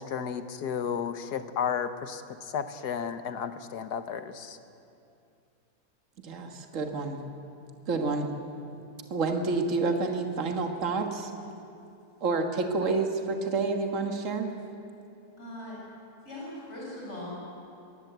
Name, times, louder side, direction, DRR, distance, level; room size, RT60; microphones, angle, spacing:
voice 1, 0.0-2.2 2.5-4.6, left 7 dB, 85° left, 10 dB, 1.6 m, -33 dB
voice 2, 6.2-7.2 7.9-8.3 9.1-11.3 12.2-14.5, right 3 dB, 55° right, 4 dB, 1.9 m, -29 dB
voice 3, 15.4-15.8 16.2-17.3, left 1 dB, 45° left, -4 dB, 5.9 m, -40 dB
22.5 x 20.0 x 8.1 m, 2.7 s
omnidirectional pair, 1.7 m